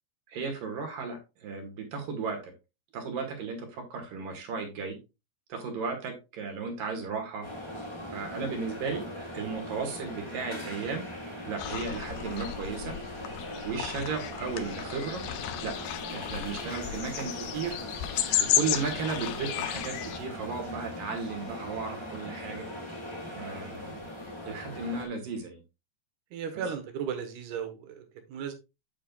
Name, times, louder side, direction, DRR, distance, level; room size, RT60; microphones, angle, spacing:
voice 1, 0.3-2.5 2.9-5.0 5.5-7.5 8.1-11.1 11.5-13.0 13.6-15.3 15.6-15.8 16.1-17.8 18.4-22.7 23.3-24.0 24.4-25.6 26.5-26.6, right 5 dB, 60° right, 3 dB, 3.3 m, -35 dB
sound 1, 7.4-25.1, left 1 dB, 10° left, 1.6 m, -40 dB
sound 2, 11.6-20.2, left 11 dB, 85° left, 2.8 m, -33 dB
voice 2, 26.3-28.0 28.3-28.5, right 7 dB, 80° right, 7 dB, 3.2 m, -35 dB
8.8 x 7.4 x 2.3 m, 0.25 s
omnidirectional pair, 4.6 m